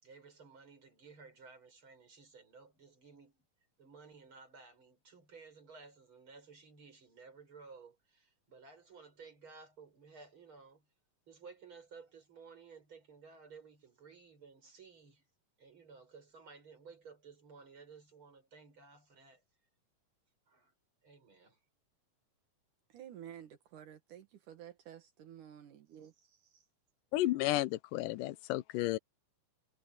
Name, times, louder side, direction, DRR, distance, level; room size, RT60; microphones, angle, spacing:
voice 1, 0.0-3.4 3.8-10.9 11.3-15.2 15.6-19.4 20.5-20.7 21.0-21.6, right 5 dB, 35° right, 6.1 m, -56 dB
voice 2, 22.9-26.1 26.5-26.7, right 10 dB, 70° right, 2.9 m, -51 dB
voice 3, 27.1-29.0, left 16 dB, 80° left, 2.2 m, -32 dB
omnidirectional pair, 3.9 m